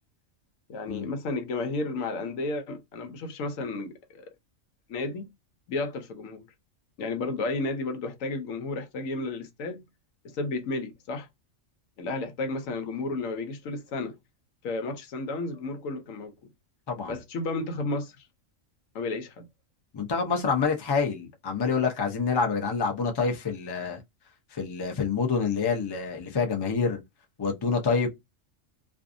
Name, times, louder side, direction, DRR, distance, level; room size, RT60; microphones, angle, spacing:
voice 1, 0.7-4.3 4.9-5.3 5.7-6.5 7.0-9.9 10.2-11.3 12.0-14.2 14.6-16.3 17.1-18.2 18.9-19.5, left 3 dB, 80° left, 1.1 m, -32 dB
voice 2, 16.9-17.2 19.9-24.0 24.5-27.0 27.4-28.1, left 5 dB, 35° left, 0.4 m, -27 dB
2.6 x 2.3 x 2.5 m
omnidirectional pair, 1.3 m